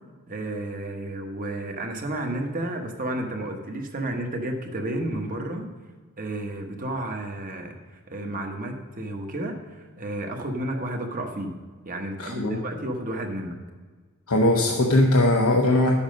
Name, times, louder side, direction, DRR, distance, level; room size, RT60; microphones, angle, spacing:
voice 1, 0.3-5.7 6.2-11.5 11.8-13.6, right 1 dB, 40° right, 3 dB, 1.1 m, -32 dB
voice 2, 12.2-12.6 14.3-15.9, left 1 dB, 75° left, 0 dB, 0.9 m, -20 dB
10.5 x 7.2 x 5.2 m, 1.5 s
head